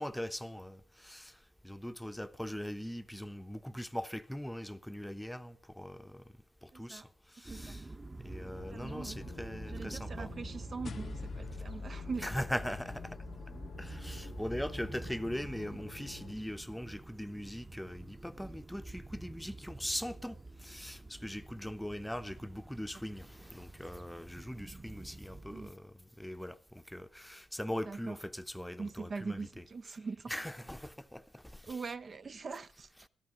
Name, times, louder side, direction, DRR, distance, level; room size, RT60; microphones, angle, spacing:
voice 1, 0.0-6.2 6.6-7.9 8.2-10.3 12.2-13.2 13.8-29.6 30.3-31.9, equal, 5° left, 0.8 m, -41 dB
voice 2, 6.7-7.0 7.5-7.7 8.7-9.3 9.7-12.3 25.5-25.7 27.9-28.2 28.8-30.3 31.7-33.1, right 4 dB, 50° right, 0.6 m, -42 dB
sound 1, 7.4-25.7, right 2 dB, 25° right, 1.0 m, -47 dB
sound 2, 8.6-16.3, left 7 dB, 90° left, 1.1 m, -51 dB
sound 3, 10.8-15.5, left 6 dB, 60° left, 0.6 m, -48 dB
13.5 x 12.5 x 5.2 m
cardioid pair, 70°, 0 cm